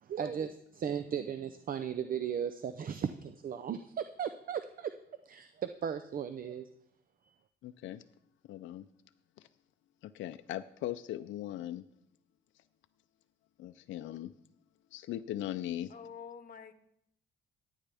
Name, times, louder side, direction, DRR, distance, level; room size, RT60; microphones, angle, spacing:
voice 1, 0.0-4.9 5.3-6.7 7.2-7.3, right 8 dB, 45° right, 10 dB, 0.6 m, -36 dB
voice 2, 7.6-8.0 8.4-8.9 9.4-9.5 10.0-11.8 12.6-12.7 13.6-14.3 14.9-15.9, left 13 dB, 75° left, 10 dB, 0.5 m, -39 dB
voice 3, 15.9-16.7, left 7 dB, 45° left, 9 dB, 1.2 m, -47 dB
15.5 x 9.2 x 3.4 m, 0.74 s
cardioid pair, 90°, 20 cm